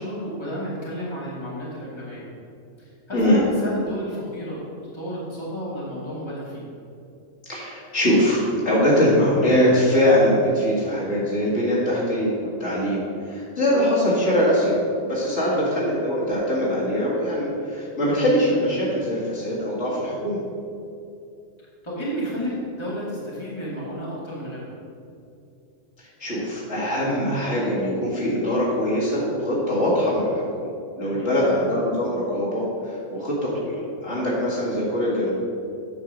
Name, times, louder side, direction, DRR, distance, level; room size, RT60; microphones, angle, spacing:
voice 1, 0.0-2.3 2.8-4.6 4.9-6.7 15.4-15.6 21.8-24.8 31.0-31.3, equal, 20° left, -7 dB, 2.2 m, -32 dB
voice 2, 7.4-8.4 8.6-14.8 15.0-20.4 26.0-30.7 31.0-35.3, equal, 60° left, -7 dB, 2.4 m, -22 dB
8.5 x 4.7 x 6.3 m, 2.5 s
omnidirectional pair, 1.3 m